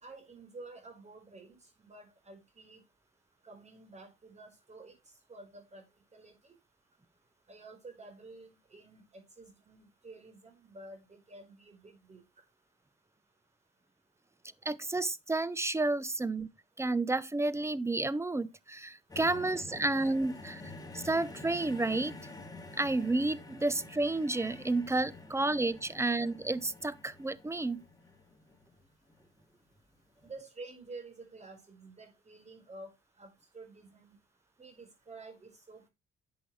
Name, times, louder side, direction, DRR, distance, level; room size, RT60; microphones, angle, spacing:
voice 1, 0.0-2.8 3.4-5.0 5.3-5.8 6.1-6.5 7.5-12.2 30.2-34.2 34.6-35.9, right 3 dB, 35° right, 4.6 m, -50 dB
voice 2, 14.6-16.5 16.8-20.6 20.9-22.1 22.8-27.8, right 2 dB, 15° right, 0.8 m, -31 dB
sound 1, 19.1-29.3 30.2-30.3, left 2 dB, 20° left, 2.8 m, -49 dB
11.0 x 7.4 x 3.2 m
cardioid pair, 90°, 20 cm